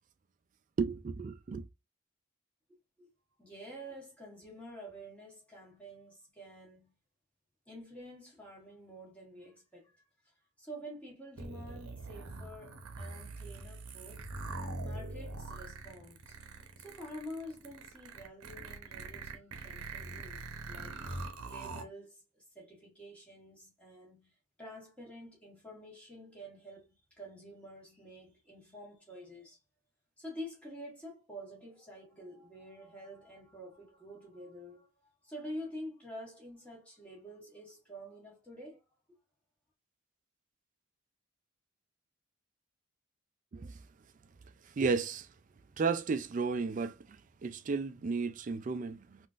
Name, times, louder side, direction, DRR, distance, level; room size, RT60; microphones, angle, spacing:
voice 1, 0.8-1.6 43.5-43.7 44.8-45.3 45.8-47.0 47.4-49.2, right 4 dB, 35° right, 0.3 m, -33 dB
voice 2, 3.4-6.9 7.7-9.9 10.6-14.3 14.8-16.4 16.8-21.0 21.5-24.3 24.6-29.6 30.2-38.8 39.1-39.2, equal, 5° left, 1.3 m, -48 dB
sound 1, 11.4-21.8, right 3 dB, 85° right, 0.7 m, -43 dB
3.6 x 2.5 x 2.4 m
head